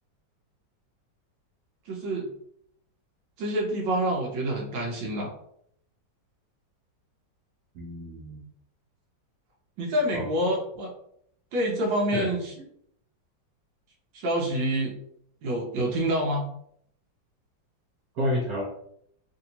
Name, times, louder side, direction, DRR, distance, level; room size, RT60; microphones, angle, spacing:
voice 1, 1.9-2.3 3.4-5.3 9.8-10.9 11.5-12.5 14.1-14.9 15.4-16.4, right 1 dB, 85° right, -1 dB, 1.4 m, -27 dB
voice 2, 7.7-8.5 10.1-10.5 12.1-12.3 18.1-18.6, equal, 65° right, -4 dB, 1.0 m, -30 dB
3.3 x 2.7 x 2.8 m, 0.69 s
omnidirectional pair, 2.0 m